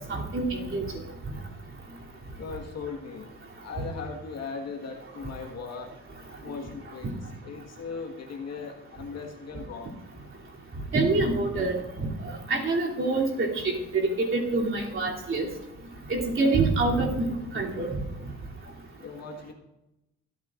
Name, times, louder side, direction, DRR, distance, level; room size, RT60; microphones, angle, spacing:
voice 1, 0.1-0.9 10.9-15.5 16.1-17.2 17.5-18.0, right 3 dB, 45° right, -3 dB, 3.0 m, -26 dB
voice 2, 2.4-3.3 3.6-6.0 6.4-10.0 19.0-19.5, left 5 dB, 60° left, 2 dB, 1.6 m, -38 dB
24.5 x 9.0 x 2.5 m, 0.96 s
cardioid pair, 90°, 30 cm